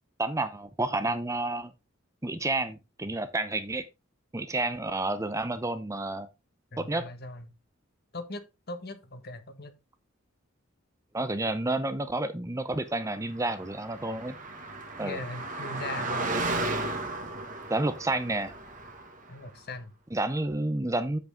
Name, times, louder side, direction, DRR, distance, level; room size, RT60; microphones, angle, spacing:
voice 1, 0.2-1.7 2.2-3.9 4.3-6.3 6.8-7.1 11.1-14.4 15.0-15.2 17.7-18.5 20.1-21.2, right 2 dB, 15° right, 0.7 m, -30 dB
voice 2, 6.7-7.5 8.1-9.7 15.0-16.3 19.3-19.9, left 2 dB, 50° left, 1.4 m, -40 dB
Car passing by, 13.3-19.3, right 2 dB, 40° right, 1.8 m, -34 dB
8.0 x 7.9 x 3.6 m
head